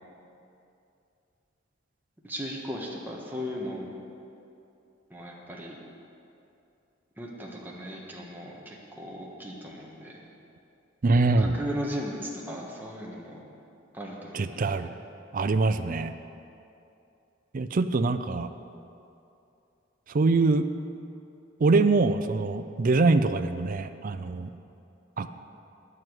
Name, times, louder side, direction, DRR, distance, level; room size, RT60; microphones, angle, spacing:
voice 1, 2.2-3.9 5.1-5.8 7.2-10.2 11.4-13.4 13.9-14.9, equal, 10° right, -3 dB, 1.4 m, -37 dB
voice 2, 11.0-11.5 14.3-14.9 15.3-16.1 17.5-18.5 20.1-20.7 21.6-24.5 25.2-25.3, right 3 dB, 45° right, 10 dB, 0.4 m, -23 dB
9.2 x 7.6 x 7.9 m, 2.7 s
head